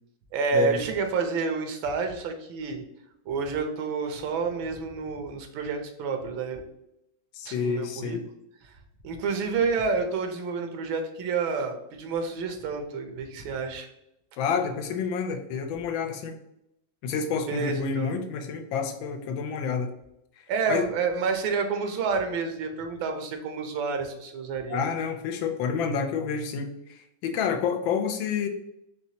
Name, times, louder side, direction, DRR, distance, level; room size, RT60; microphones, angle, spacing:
voice 1, 0.3-2.8 3.3-6.6 7.4-8.2 9.0-13.9 17.5-18.1 20.5-24.8, right 5 dB, 85° right, 5 dB, 1.5 m, -29 dB
voice 2, 7.3-8.2 14.4-16.4 17.0-19.9 20.4-20.9 24.7-28.5, left 6 dB, 85° left, 6 dB, 1.4 m, -29 dB
4.5 x 3.3 x 2.8 m, 0.83 s
omnidirectional pair, 2.1 m